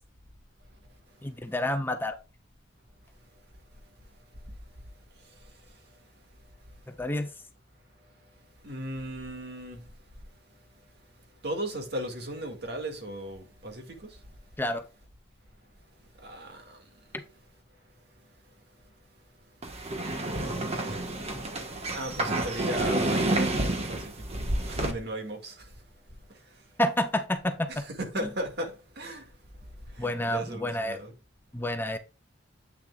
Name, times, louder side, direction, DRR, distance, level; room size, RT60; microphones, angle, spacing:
voice 1, 1.2-2.1 6.9-7.3 14.6-14.8 17.1-17.2 26.8-27.8 28.2-28.3 30.0-31.0 31.5-32.0, left 1 dB, 10° left, 0.6 m, -29 dB
voice 2, 8.6-9.9 11.4-14.2 16.2-16.8 21.9-25.7 26.3-26.4 27.7-29.3 29.9-31.1, right 1 dB, 65° right, 2.0 m, -36 dB
sound 1, 19.6-24.9, right 2 dB, 35° right, 1.3 m, -29 dB
8.3 x 6.6 x 2.4 m
head